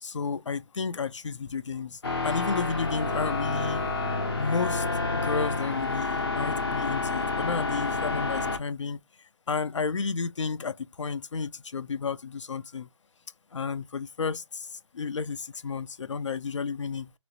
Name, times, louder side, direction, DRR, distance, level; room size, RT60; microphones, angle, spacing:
voice 1, 0.0-3.9 4.4-4.9 5.1-9.0 9.5-12.9 13.5-17.1, left 5 dB, 70° left, 0.5 m, -32 dB
sound 1, 2.0-8.6, left 3 dB, 50° left, 1.0 m, -29 dB
3.0 x 2.4 x 2.9 m
hypercardioid pair, 180°, 16 cm